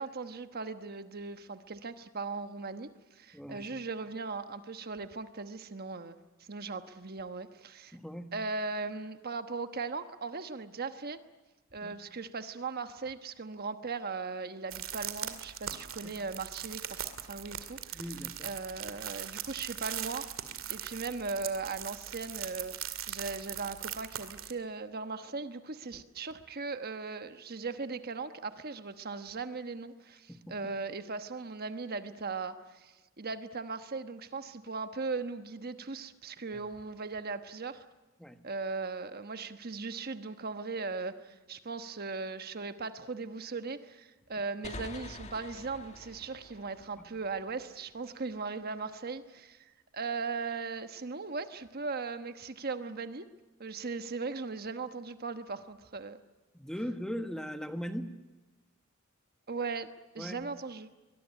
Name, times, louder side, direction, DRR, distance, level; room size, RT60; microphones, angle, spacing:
voice 1, 0.0-6.2 6.5-8.0 8.3-11.2 11.7-18.0 18.4-20.3 20.7-37.8 38.4-53.2 53.6-56.2 59.5-59.9 60.1-60.9, right 4 dB, 50° right, 9 dB, 1.2 m, -38 dB
voice 2, 3.3-3.7 7.9-8.3 11.8-11.9 16.0-16.1 17.9-18.4 30.3-30.6 38.2-38.4 56.5-58.1 60.2-60.4, equal, 5° left, 7 dB, 1.3 m, -39 dB
sound 1, 14.7-24.5, right 11 dB, 70° right, 2.2 m, -40 dB
sound 2, 44.6-48.1, left 2 dB, 35° left, 1.9 m, -47 dB
23.5 x 21.5 x 10.0 m, 1.2 s
head